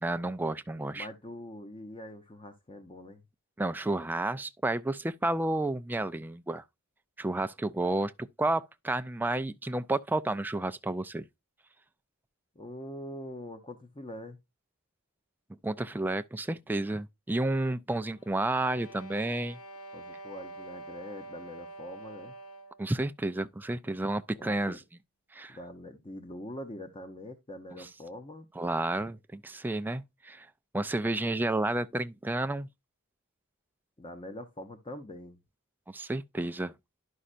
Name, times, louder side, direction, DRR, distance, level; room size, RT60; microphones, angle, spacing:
voice 1, 0.0-1.1 3.6-6.6 7.2-8.1 8.4-11.2 15.6-19.6 22.8-24.8 25.3-25.6 28.6-30.5 30.7-32.7 35.9-36.7, right 2 dB, 10° right, 0.3 m, -31 dB
voice 2, 0.9-3.2 12.5-14.4 19.9-22.4 23.8-23.9 24.4-24.8 25.5-28.5 34.0-35.4, left 1 dB, 25° left, 0.7 m, -44 dB
sound 1, 18.1-22.9, right 2 dB, 90° left, 0.9 m, -46 dB
11.5 x 5.4 x 2.5 m
head